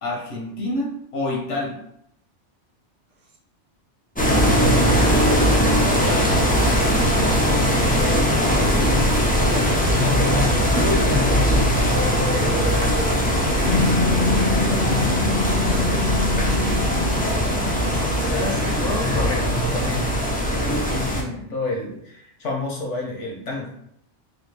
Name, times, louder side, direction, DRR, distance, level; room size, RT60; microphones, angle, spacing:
voice 1, 0.0-1.8 14.4-15.2 17.6-23.7, left 2 dB, 85° left, -1 dB, 1.4 m, -30 dB
sound 1, 4.1-21.2, equal, 10° left, 0.5 m, -20 dB
voice 2, 4.7-8.8 9.1-13.3 16.0-17.0, right 1 dB, 45° right, 0 dB, 0.8 m, -33 dB
sound 2, 13.6-20.4, left 3 dB, 70° left, 0.9 m, -26 dB
4.0 x 2.9 x 3.3 m, 0.73 s
omnidirectional pair, 1.2 m